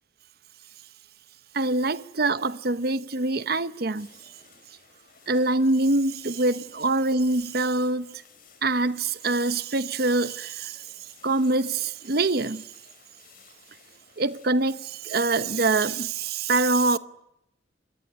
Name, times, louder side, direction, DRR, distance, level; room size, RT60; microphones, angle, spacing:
voice 1, 1.5-4.3 5.3-8.2 8.6-12.7 14.2-17.0, right 2 dB, 55° right, 0.9 m, -25 dB
sound 1, 3.9-15.5, left 6 dB, 50° left, 4.8 m, -55 dB
27.0 x 21.5 x 9.6 m
head